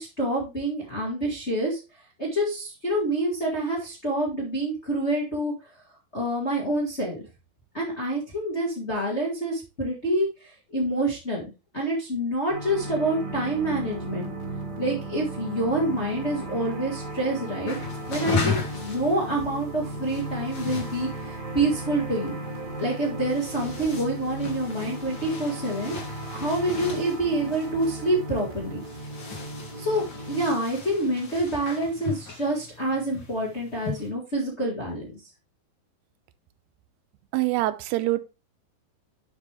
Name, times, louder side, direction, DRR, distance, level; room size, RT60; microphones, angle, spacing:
voice 1, 0.0-1.8 2.2-5.5 6.1-7.2 7.7-11.4 11.7-14.3 14.8-17.7 18.1-22.3 22.8-25.9 26.3-28.8 29.8-35.1, right 1 dB, 35° left, 1.0 m, -27 dB
sound 1, 12.5-30.5, right 2 dB, 60° right, 3.6 m, -36 dB
sound 2, 17.7-34.1, left 5 dB, 55° left, 1.3 m, -37 dB
voice 2, 37.3-38.2, right 17 dB, 85° right, 2.6 m, -24 dB
10.5 x 5.4 x 3.4 m
omnidirectional pair, 4.8 m